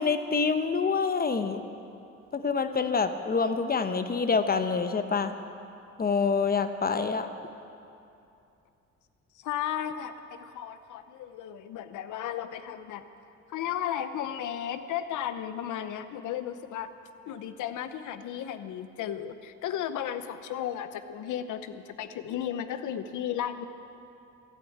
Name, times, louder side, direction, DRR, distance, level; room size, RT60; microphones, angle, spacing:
voice 1, 0.0-1.6 2.3-5.3 6.0-7.3, left 5 dB, 30° left, 9 dB, 0.9 m, -26 dB
voice 2, 9.4-13.0 13.5-16.9 17.3-23.6, left 10 dB, 80° left, 11 dB, 0.8 m, -34 dB
15.0 x 8.4 x 8.6 m, 2.6 s
cardioid pair, 90°, 30 cm